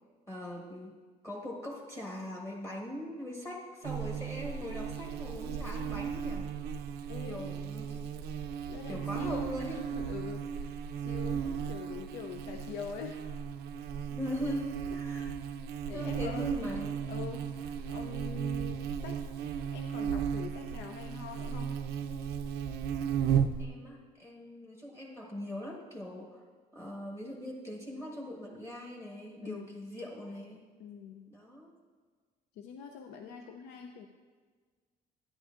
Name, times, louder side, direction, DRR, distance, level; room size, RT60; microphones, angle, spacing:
voice 1, 0.3-1.0 1.2-6.5 7.2-8.0 8.9-9.8 11.1-11.6 14.1-15.3 15.9-17.0 23.6-26.4 26.7-30.6 31.3-31.7 33.1-33.4, equal, 15° left, -2 dB, 1.3 m, -41 dB
Buzz, 3.8-23.6, right 8 dB, 80° right, 0.5 m, -35 dB
voice 2, 7.1-7.5 8.7-13.2 14.9-15.0 15.8-16.5 17.1-19.2 19.7-21.8 29.4-29.7 30.8-31.3 32.6-34.1, left 7 dB, 85° left, 4 dB, 0.5 m, -44 dB
11.0 x 9.7 x 2.5 m, 1.5 s
cardioid pair, 110°, 17 cm